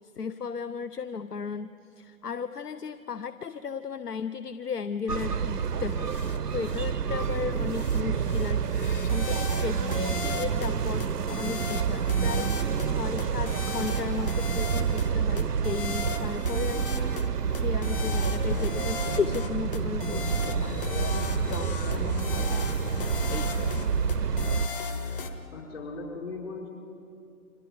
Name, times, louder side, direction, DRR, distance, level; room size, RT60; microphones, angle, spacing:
voice 1, 0.2-8.7 8.9-11.1 11.4-22.5 23.3-23.7, left 6 dB, 80° left, 13 dB, 0.7 m, -35 dB
sound 1, 5.1-24.7, right 7 dB, 80° right, 0.7 m, -28 dB
sound 2, 6.1-6.4 6.6-6.9 7.7-8.0 8.3-10.7 11.0-12.9 13.2-15.1 15.4-17.3 17.5-25.3, left 5 dB, 35° left, 1.2 m, -36 dB
voice 2, 25.5-26.7, left 3 dB, 50° left, -3 dB, 5.6 m, -38 dB
29.0 x 25.0 x 3.9 m, 2.5 s
figure-of-eight pair, 140°, 46 cm